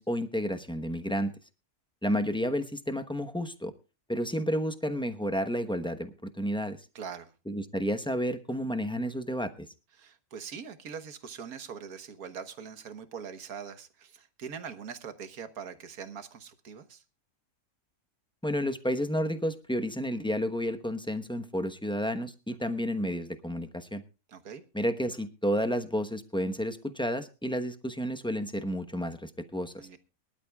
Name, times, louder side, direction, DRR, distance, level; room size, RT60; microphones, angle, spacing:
voice 1, 0.0-1.3 2.0-3.7 4.1-6.8 7.5-9.5 18.4-24.0 24.7-29.7, equal, 5° left, 8 dB, 0.8 m, -31 dB
voice 2, 7.0-7.3 10.0-17.0 24.3-24.6 29.8-30.0, right 7 dB, 80° right, 9 dB, 1.7 m, -42 dB
23.5 x 12.0 x 2.3 m, 0.31 s
omnidirectional pair, 1.5 m